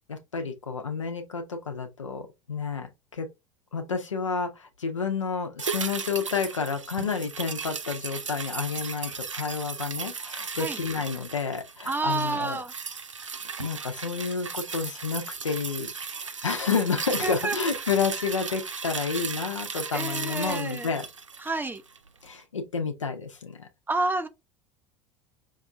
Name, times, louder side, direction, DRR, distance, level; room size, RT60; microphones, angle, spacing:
voice 1, 0.1-3.3 3.7-12.6 13.6-15.9 16.2-21.1 22.2-23.7, left 5 dB, 85° left, 0.9 m, -30 dB
sound 1, 5.6-22.1 22.4-22.5, right 5 dB, 90° right, 0.4 m, -36 dB
voice 2, 11.9-12.7 17.2-17.6 19.9-20.9 21.4-21.8 23.9-24.3, right 3 dB, 15° right, 0.6 m, -29 dB
5.6 x 2.6 x 2.2 m
figure-of-eight pair, 75°, 16 cm